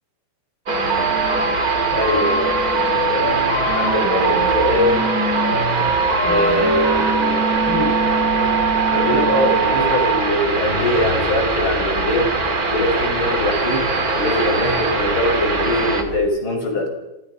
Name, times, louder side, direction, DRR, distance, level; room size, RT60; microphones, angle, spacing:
sound 1, 0.7-16.2, equal, 60° left, 9.2 m, -34 dB
sound 2, 0.7-16.0, right 3 dB, 30° right, 1.7 m, -20 dB
voice 1, 1.9-2.5 3.1-5.2 6.2-7.4 7.7-7.9 8.9-12.3 12.7-13.9 14.1-16.9, left 1 dB, 25° left, 2 dB, 6.8 m, -22 dB
30.0 x 26.5 x 5.7 m, 0.95 s
omnidirectional pair, 5.4 m